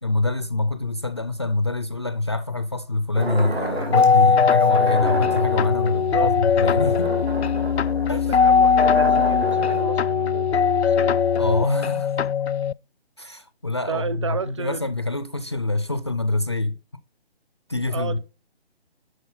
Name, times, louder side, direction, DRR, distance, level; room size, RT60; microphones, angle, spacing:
voice 1, 0.0-7.1 8.1-8.3 11.4-12.1 13.2-16.7 17.7-18.2, left 2 dB, 25° left, 0.4 m, -25 dB
sound 1, 3.1-4.2 4.6-9.8, right 2 dB, 80° right, 2.8 m, -32 dB
sound 2, 3.9-12.7, left 6 dB, 85° left, 0.5 m, -20 dB
voice 2, 5.9-6.3 8.1-11.2 13.9-14.8 17.9-18.2, right 5 dB, 30° right, 0.7 m, -32 dB
11.0 x 4.2 x 6.6 m
figure-of-eight pair, 150°, 32 cm